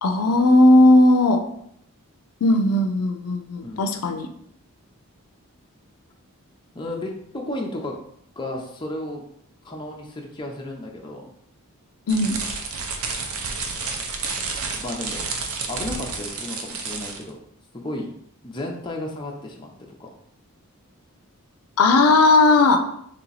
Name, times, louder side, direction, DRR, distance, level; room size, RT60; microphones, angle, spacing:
voice 1, 0.0-1.4 2.4-4.3 12.1-12.4 21.8-22.8, left 2 dB, 85° left, 6 dB, 0.4 m, -16 dB
voice 2, 6.7-8.0 8.4-9.2 9.6-11.3 14.8-15.2 15.7-17.4 17.8-18.1 18.4-19.7 20.0-20.1, left 1 dB, 20° left, -1 dB, 0.5 m, -33 dB
sound 1, 12.1-17.3, right 4 dB, 75° right, 0.6 m, -30 dB
3.3 x 2.9 x 3.9 m, 0.69 s
head